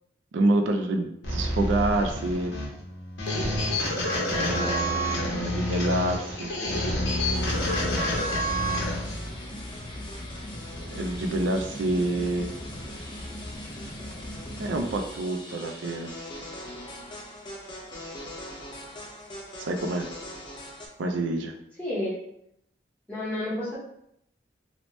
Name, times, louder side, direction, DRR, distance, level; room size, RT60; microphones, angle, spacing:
voice 1, 0.3-2.5 4.3-6.5 10.8-12.5 14.6-16.1 19.6-20.1 21.0-21.5, right 2 dB, 85° right, 4 dB, 0.4 m, -27 dB
sound 1, 1.2-9.2, equal, 80° left, 0.8 m, -28 dB
voice 2, 4.6-5.1 21.8-22.2 23.1-23.8, left 1 dB, 10° left, -9 dB, 1.0 m, -31 dB
sound 2, 7.3-20.9, left 1 dB, 25° left, 0.4 m, -39 dB
2.9 x 2.1 x 3.0 m, 0.77 s
head